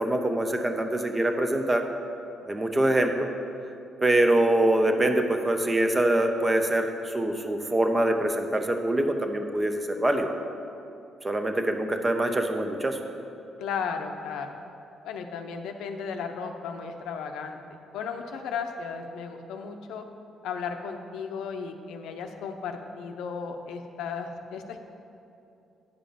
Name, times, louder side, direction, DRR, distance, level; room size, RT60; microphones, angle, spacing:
voice 1, 0.0-1.8 2.5-3.3 4.0-6.9 7.1-10.3 11.2-13.0, right 1 dB, 20° right, 5 dB, 0.8 m, -24 dB
voice 2, 13.6-14.6 15.0-20.0 20.4-24.8, left 6 dB, 85° left, 5 dB, 0.6 m, -35 dB
9.4 x 5.1 x 5.7 m, 2.6 s
cardioid pair, 90°, 0 cm